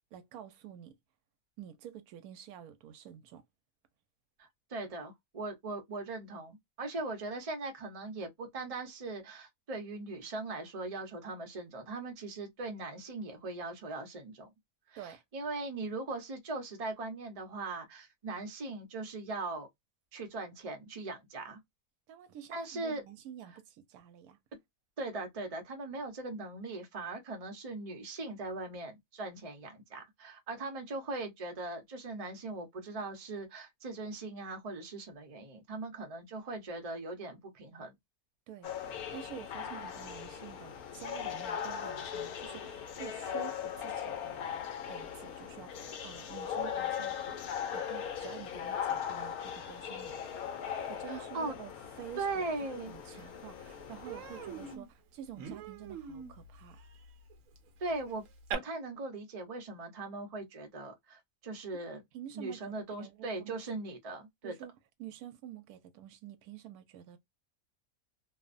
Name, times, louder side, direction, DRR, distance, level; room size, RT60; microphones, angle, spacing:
voice 1, 0.1-1.0 1.6-3.4 15.0-15.2 22.1-24.4 38.5-38.7 39.1-44.6 44.9-50.2 50.6-52.4 52.9-56.8 61.7-61.8 62.1-63.5 64.4-64.7 65.0-67.2, right 10 dB, 90° right, 1.1 m, -49 dB
voice 2, 4.4-14.5 14.9-19.7 20.1-21.6 22.5-23.0 25.0-37.9 51.1-51.5 52.2-53.2 57.8-58.2 58.5-62.0 62.3-64.5, right 3 dB, 35° right, 0.6 m, -40 dB
sound 1, 38.6-54.8, left 8 dB, 80° left, 1.2 m, -39 dB
Human voice, 53.0-53.1 53.5-53.7 54.0-58.5, right 7 dB, 70° right, 1.0 m, -44 dB
2.8 x 2.1 x 2.4 m
omnidirectional pair, 1.5 m